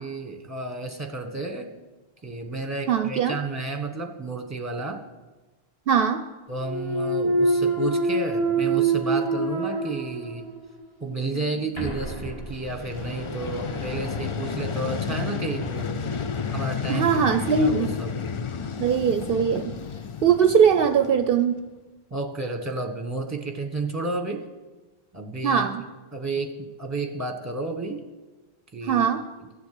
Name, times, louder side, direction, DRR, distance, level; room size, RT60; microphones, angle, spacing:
voice 1, 0.0-1.7 2.2-5.0 6.5-10.5 11.0-16.0 16.5-18.2 22.1-24.4 25.1-25.7 26.1-28.0 28.7-29.1, right 3 dB, 15° right, 4 dB, 1.3 m, -32 dB
voice 2, 2.9-3.4 5.9-6.2 16.9-17.9 18.8-19.7 20.2-21.7 25.4-25.8 28.9-29.2, right 7 dB, 65° right, 9 dB, 0.8 m, -21 dB
Thump thud, 6.6-10.6 11.1-15.8, right 2 dB, 25° left, 2.5 m, -27 dB
Vehicle, 12.5-21.5, left 6 dB, 40° left, 0.5 m, -32 dB
14.0 x 7.2 x 7.7 m, 1.2 s
omnidirectional pair, 1.1 m